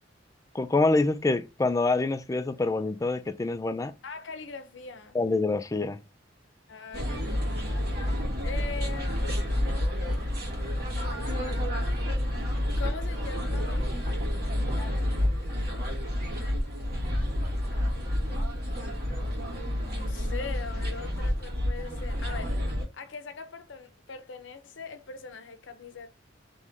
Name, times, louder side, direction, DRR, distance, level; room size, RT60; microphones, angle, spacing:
voice 1, 0.5-3.9 5.1-6.0, left 3 dB, 15° left, 0.3 m, -26 dB
voice 2, 4.0-5.2 6.7-7.7 8.4-9.7 11.0-11.8 12.8-13.9 14.8-15.2 15.5-15.9 19.8-22.6 22.9-26.1, left 5 dB, 75° left, 0.7 m, -42 dB
sound 1, 6.9-22.8, left 1 dB, 55° right, 1.5 m, -29 dB
3.6 x 3.1 x 4.0 m
head